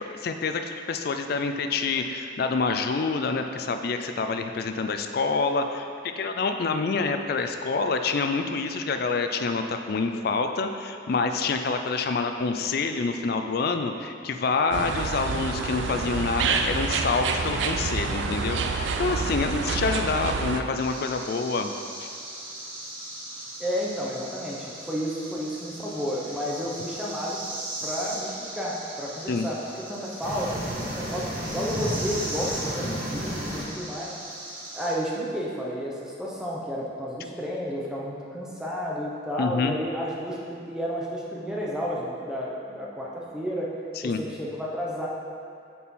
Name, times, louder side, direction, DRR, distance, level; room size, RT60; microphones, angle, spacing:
voice 1, 0.0-21.7 22.0-22.1 29.3-29.5 39.4-39.7 44.0-44.2, left 4 dB, 50° left, 6 dB, 0.4 m, -27 dB
sound 1, 14.7-20.6, right 4 dB, 65° right, 0.4 m, -28 dB
sound 2, 20.8-34.9, right 1 dB, 90° right, 1.6 m, -38 dB
voice 2, 23.6-27.4 27.8-29.6 29.9-34.1 34.7-43.7 44.0-45.1, equal, 5° right, -5 dB, 0.7 m, -31 dB
sound 3, 30.2-33.6, equal, 50° right, 1.4 m, -32 dB
8.4 x 4.3 x 3.6 m, 2.5 s
head